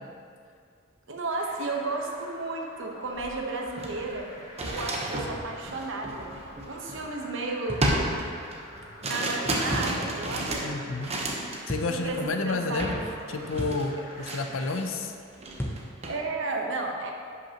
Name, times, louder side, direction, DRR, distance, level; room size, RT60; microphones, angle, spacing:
voice 1, 1.1-4.3 4.6-8.0 9.0-10.7 11.9-13.1 13.9-14.3 16.1-17.1, right 3 dB, 65° right, 1 dB, 1.0 m, -33 dB
sound 1, 1.3-14.7, left 1 dB, 40° left, 1.7 m, -48 dB
sound 2, 3.1-3.3 3.7-7.3 7.8-11.7 12.0-12.3 12.8-13.1 13.3-15.0 15.3-16.2, right 1 dB, 35° right, 0.9 m, -32 dB
sound 3, 7.7-7.9 9.7-10.0 11.7-11.9 13.6-13.9 15.6-15.9, equal, 10° left, 0.7 m, -33 dB
voice 2, 10.6-11.1 11.7-12.9 13.3-15.1, left 3 dB, 70° left, 6 dB, 0.6 m, -30 dB
10.5 x 5.8 x 2.9 m, 2.3 s
head